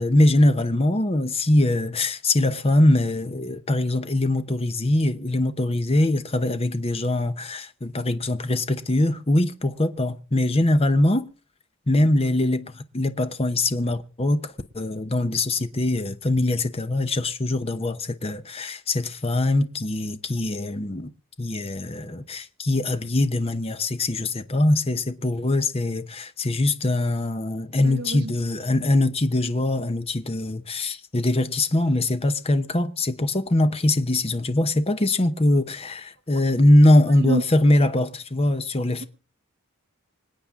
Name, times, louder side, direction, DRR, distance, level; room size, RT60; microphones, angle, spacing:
voice 1, 0.0-11.3 11.9-21.1 21.4-39.1, left 1 dB, 30° left, 0.9 m, -22 dB
voice 2, 27.8-28.3 36.3-36.4 37.2-37.4, right 2 dB, 55° right, 0.9 m, -27 dB
26.0 x 8.8 x 3.7 m
head